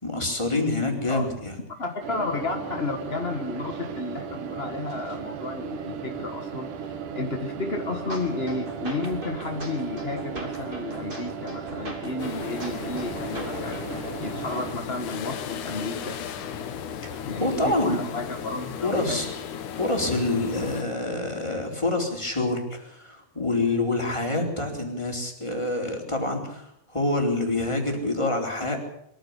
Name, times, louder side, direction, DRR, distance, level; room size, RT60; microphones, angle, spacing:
voice 1, 0.0-1.6 17.0-18.0 18.8-19.3 19.8-28.8, left 2 dB, 10° left, 1 dB, 4.0 m, -27 dB
voice 2, 1.8-16.2 17.3-19.3, left 3 dB, 40° left, 4 dB, 0.9 m, -32 dB
sound 1, 2.0-14.7, right 7 dB, 75° right, 3.1 m, -36 dB
sound 2, 8.1-14.1, right 1 dB, 15° right, 2.9 m, -40 dB
sound 3, 12.2-20.8, left 8 dB, 75° left, 2.7 m, -35 dB
22.5 x 15.0 x 8.3 m, 0.75 s
omnidirectional pair, 3.6 m